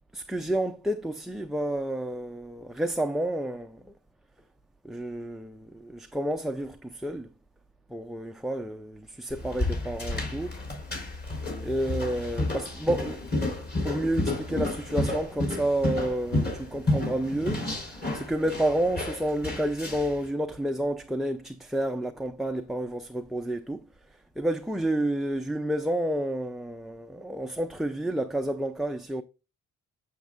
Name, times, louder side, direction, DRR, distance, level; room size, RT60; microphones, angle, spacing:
voice 1, 0.1-3.8 4.8-7.3 7.9-10.6 11.6-13.3 13.8-23.9 24.4-29.2, right 1 dB, ahead, 0.4 m, -30 dB
sound 1, 9.3-20.2, left 2 dB, 35° left, 4.0 m, -31 dB
6.9 x 6.5 x 2.4 m
cardioid pair, 90°, 30 cm